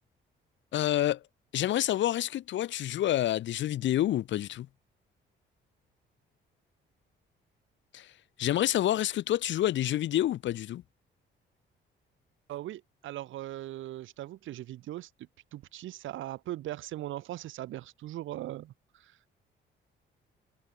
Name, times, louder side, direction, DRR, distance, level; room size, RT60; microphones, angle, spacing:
voice 1, 0.7-1.2 1.5-4.7 7.9-8.1 8.4-10.8, left 13 dB, 70° left, 0.8 m, -28 dB
voice 2, 12.5-15.1 15.5-19.4, right 14 dB, 75° right, 1.0 m, -40 dB
cardioid pair, 90°, 20 cm